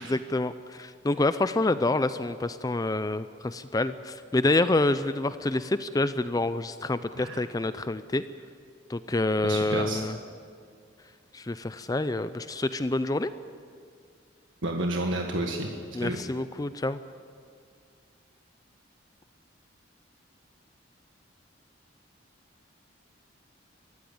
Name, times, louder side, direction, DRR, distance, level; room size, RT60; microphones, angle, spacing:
voice 1, 0.0-8.2 8.9-10.2 11.3-13.3 15.9-17.0, left 2 dB, 20° left, 12 dB, 0.4 m, -27 dB
voice 2, 9.4-10.0 14.6-16.2, right 1 dB, 80° right, 2 dB, 1.6 m, -31 dB
22.5 x 14.5 x 8.8 m, 2.2 s
head